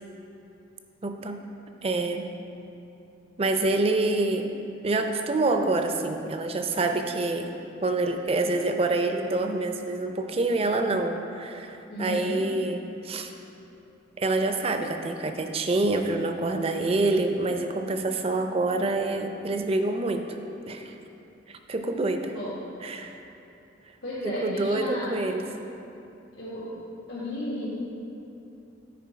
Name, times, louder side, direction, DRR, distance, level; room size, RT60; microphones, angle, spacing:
voice 1, 1.0-1.4 1.8-2.3 3.4-4.5 4.8-7.5 7.8-13.3 14.2-20.2 20.7-21.0 21.5-22.3 22.8-23.1 24.2-25.4, right 2 dB, 35° right, 6 dB, 0.5 m, -26 dB
voice 2, 11.9-12.5 22.3-22.6 24.0-25.2 26.4-26.7 27.1-27.7, equal, 85° left, -10 dB, 1.6 m, -33 dB
9.3 x 4.5 x 4.7 m, 2.8 s
head